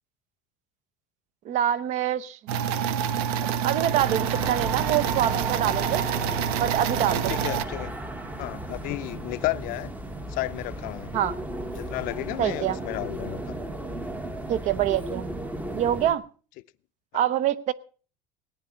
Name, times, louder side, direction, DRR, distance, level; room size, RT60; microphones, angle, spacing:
voice 1, 1.4-2.4 3.4-6.1 6.6-7.3 11.1-11.3 12.4-12.8 14.5-15.3 15.7-16.2 17.1-17.7, right 11 dB, 40° right, 0.8 m, -25 dB
sound 1, 2.5-7.6, right 8 dB, 75° right, 1.1 m, -27 dB
sound 2, 3.8-16.1, right 1 dB, 10° right, 0.9 m, -35 dB
voice 2, 6.9-7.9 8.4-9.9 10.3-11.1 11.7-13.5 17.1-17.2, left 20 dB, 45° left, 0.7 m, -33 dB
18.0 x 9.8 x 5.6 m
cardioid pair, 165°, 19 cm